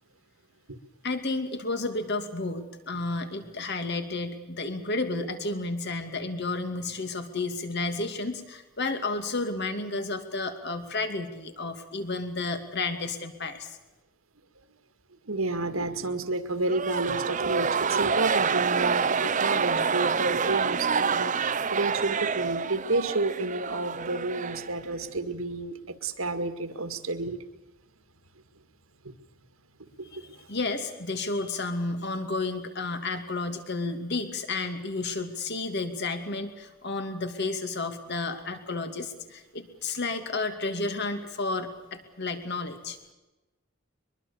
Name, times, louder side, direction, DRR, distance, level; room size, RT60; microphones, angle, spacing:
voice 1, 1.0-13.8 30.1-43.0, left 3 dB, 55° left, 8 dB, 2.5 m, -32 dB
voice 2, 15.3-27.4 29.0-29.1 29.8-30.3, right 2 dB, 85° right, 9 dB, 2.0 m, -31 dB
sound 1, 16.7-25.1, right 5 dB, 35° right, 0.8 m, -27 dB
23.0 x 22.5 x 7.1 m, 1.1 s
head